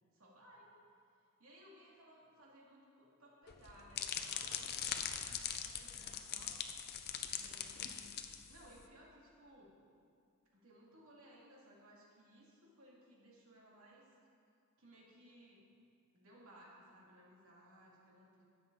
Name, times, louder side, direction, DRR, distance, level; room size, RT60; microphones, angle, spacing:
voice 1, 0.1-0.7 1.4-6.6 7.3-8.2 8.5-9.7 10.5-14.0 14.8-15.6 16.1-18.4, equal, 70° right, -4 dB, 2.5 m, -61 dB
sound 1, 3.5-8.8, left 8 dB, 50° left, 0.6 m, -42 dB
13.0 x 9.4 x 4.0 m, 2.4 s
head